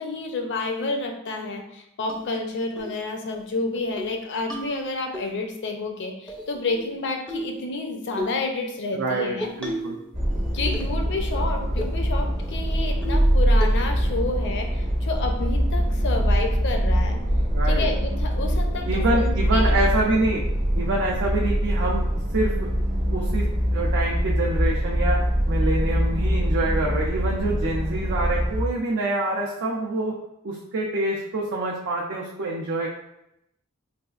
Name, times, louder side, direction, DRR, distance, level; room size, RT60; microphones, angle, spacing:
voice 1, 0.0-9.5 10.5-17.2 17.6-19.9, left 3 dB, 55° left, 4 dB, 0.5 m, -30 dB
sound 1, 2.1-2.2 2.8-3.0 3.3-3.4 3.8-4.1 4.5-5.2 6.3-6.9 7.3-7.6 8.2-8.4 9.4-10.0 10.3-11.0 11.3-11.4 11.8-12.0 12.4-12.5 13.0-13.3 13.6-14.0, equal, 5° left, 0.5 m, -33 dB
voice 2, 8.9-10.0 17.5-17.9 18.9-20.4 20.7-22.7 23.1-25.2 25.5-30.2 30.4-32.9, right 2 dB, 60° right, -3 dB, 0.5 m, -26 dB
sound 2, 10.1-28.6, equal, 40° right, 0.8 m, -23 dB
4.1 x 2.4 x 2.4 m, 0.82 s
head